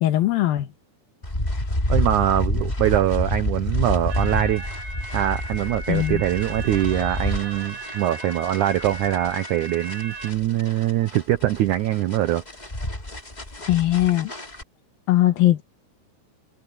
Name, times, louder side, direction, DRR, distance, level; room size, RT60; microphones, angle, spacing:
voice 1, 0.0-0.7 5.9-6.2 13.7-14.3 15.1-15.6, left 14 dB, 70° left, 2.9 m, -20 dB
sound 1, 1.2-14.6, left 1 dB, 10° left, 2.3 m, -29 dB
voice 2, 1.9-4.6 5.1-12.4, right 13 dB, 85° right, 1.7 m, -23 dB
sound 2, 4.1-10.3, right 2 dB, 45° right, 5.5 m, -37 dB
omnidirectional pair, 4.6 m